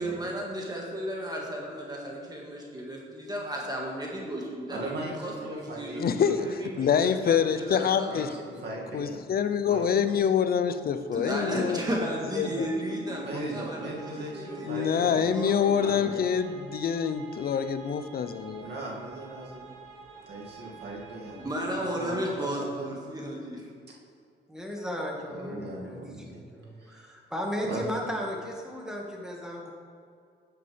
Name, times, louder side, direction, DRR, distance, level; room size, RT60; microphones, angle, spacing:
voice 1, 0.0-8.3 11.1-16.1 21.4-23.7, right 1 dB, 20° right, -2 dB, 1.8 m, -34 dB
voice 2, 4.7-7.6 8.0-9.3 9.6-10.3 13.2-15.3 15.7-16.3 18.6-19.7 20.3-21.4 21.8-22.9 25.3-26.4 26.8-27.1 27.6-27.9, right 2 dB, 55° right, -3 dB, 2.3 m, -39 dB
voice 3, 6.0-8.3 8.9-11.8 12.4-12.7 14.6-18.7, left 7 dB, 50° left, 11 dB, 0.6 m, -26 dB
sound 1, 10.0-22.8, right 4 dB, 80° right, 2.5 m, -50 dB
voice 4, 24.5-26.0 26.3-29.7, equal, 5° right, -1 dB, 1.8 m, -35 dB
10.5 x 7.8 x 3.4 m, 2.3 s
cardioid pair, 90°, 20 cm